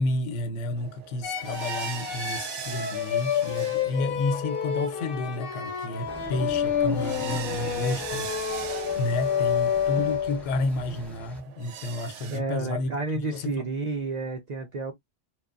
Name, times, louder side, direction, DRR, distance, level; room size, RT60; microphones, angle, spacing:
voice 1, 0.0-13.7, left 2 dB, 85° left, 0.9 m, -31 dB
sound 1, 0.8-12.4, right 9 dB, 85° right, 0.9 m, -41 dB
sound 2, 1.2-10.6, left 8 dB, 60° left, 0.7 m, -29 dB
sound 3, 6.1-11.4, equal, ahead, 0.6 m, -44 dB
voice 2, 12.3-14.9, right 3 dB, 55° right, 0.5 m, -31 dB
2.9 x 2.2 x 2.3 m
omnidirectional pair, 1.2 m